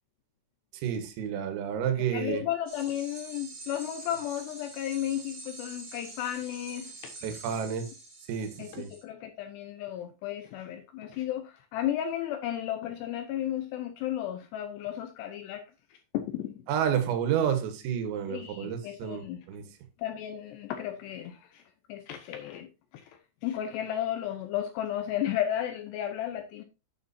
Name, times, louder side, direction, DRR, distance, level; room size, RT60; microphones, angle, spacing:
voice 1, 0.7-2.4 7.2-7.9 8.3-8.9 16.7-19.7, right 8 dB, 90° right, 4.1 m, -30 dB
voice 2, 2.1-7.1 8.6-15.6 15.9-16.6 18.3-19.5 20.0-21.6 21.9-26.6, left 11 dB, 80° left, 2.5 m, -34 dB
sound 1, 2.7-9.0, right 2 dB, 25° right, 3.1 m, -46 dB
9.6 x 9.1 x 2.7 m
omnidirectional pair, 5.8 m